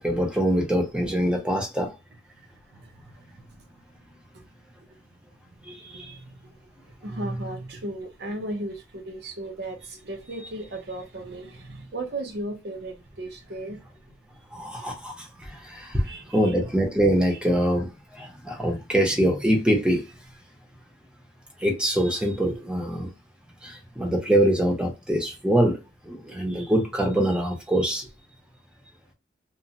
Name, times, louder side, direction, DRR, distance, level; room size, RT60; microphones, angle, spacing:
voice 1, 0.0-1.9 5.7-6.2 14.5-16.1 16.3-20.0 21.6-23.1 23.6-25.8 26.0-28.1, right 1 dB, 5° right, 0.7 m, -24 dB
voice 2, 5.7-6.6 7.0-13.8 16.0-16.5 26.3-26.4, right 1 dB, 60° right, 0.6 m, -36 dB
2.9 x 2.1 x 2.6 m
head